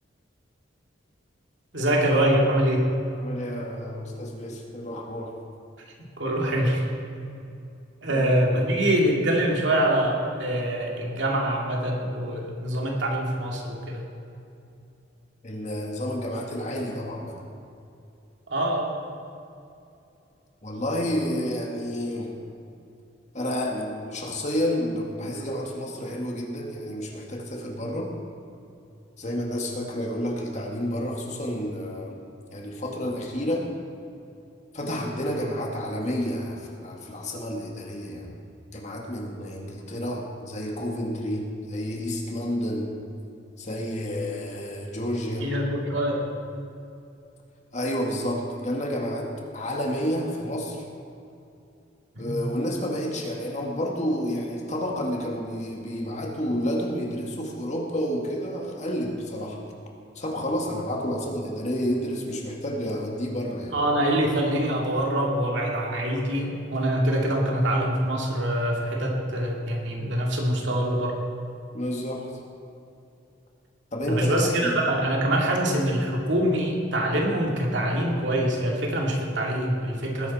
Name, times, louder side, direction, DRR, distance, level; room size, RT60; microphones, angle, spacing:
voice 1, 1.7-2.9 6.2-6.9 8.0-14.0 18.5-18.9 45.4-46.3 52.2-52.4 63.7-71.2 74.0-80.3, right 1 dB, 70° right, -1 dB, 2.5 m, -24 dB
voice 2, 3.1-5.4 8.1-8.6 15.4-17.4 20.6-22.3 23.3-28.1 29.2-32.2 32.5-33.7 34.7-38.3 38.7-42.9 43.6-45.5 47.7-50.8 52.2-59.6 60.2-63.7 71.7-72.3 73.9-74.7, equal, 35° left, 0 dB, 2.1 m, -30 dB
19.5 x 10.5 x 4.3 m, 2.7 s
head